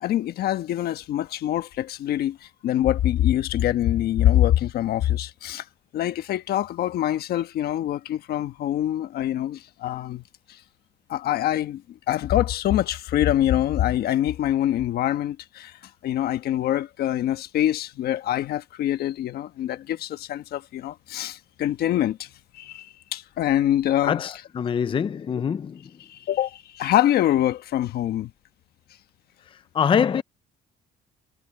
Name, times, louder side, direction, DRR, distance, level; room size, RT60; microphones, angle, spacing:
voice 1, 0.0-5.7 5.9-10.2 10.5-10.6 11.1-24.2 26.0-28.3, left 12 dB, 65° left, 1.3 m, -25 dB
voice 2, 24.0-25.8 29.7-30.2, left 7 dB, 30° left, 0.5 m, -24 dB
cardioid pair, 110°, 17 cm